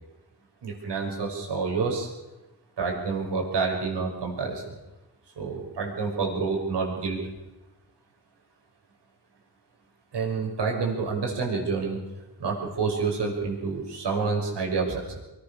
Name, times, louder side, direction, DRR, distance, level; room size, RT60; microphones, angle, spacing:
voice 1, 0.6-2.1 2.8-4.7 5.4-7.2 10.1-12.0 12.4-15.2, right 4 dB, 90° right, 0 dB, 6.2 m, -28 dB
24.0 x 17.5 x 6.7 m, 1.0 s
cardioid pair, 65°, 40 cm